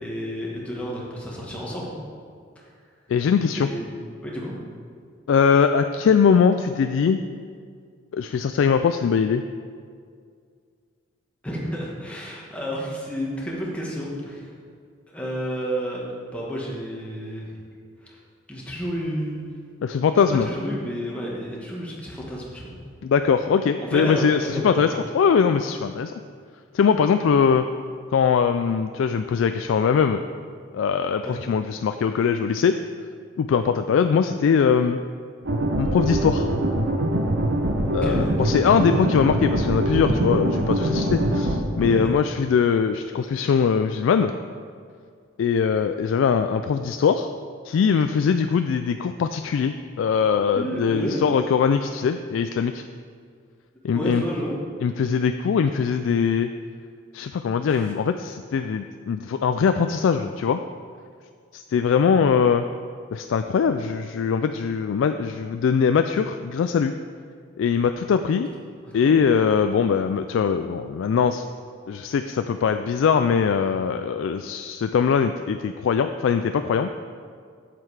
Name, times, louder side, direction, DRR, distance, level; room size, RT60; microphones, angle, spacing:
voice 1, 0.0-2.0 3.5-3.9 4.2-4.5 11.4-14.5 15.1-16.0 16.3-17.5 18.0-18.2 18.5-19.4 20.3-22.8 23.8-25.0 31.2-31.3 37.8-38.3 40.0-40.2 41.8-42.1 50.5-51.4 53.9-54.6 68.9-69.2, equal, 5° left, -4 dB, 1.4 m, -31 dB
voice 2, 3.1-3.7 5.3-7.2 8.1-9.4 19.8-20.5 23.0-26.1 26.7-27.6 28.1-30.2 30.7-32.8 33.4-35.0 35.8-36.5 37.9-44.3 45.4-47.3 47.6-52.8 53.8-54.2 54.8-56.5 57.1-60.6 61.5-62.7 63.1-66.9 67.6-68.5 68.9-71.4 71.9-76.9, left 6 dB, 75° left, 8 dB, 0.3 m, -21 dB
sound 1, 35.4-41.6, right 1 dB, 75° right, 0.9 m, -23 dB
7.7 x 7.6 x 4.8 m, 2.1 s
head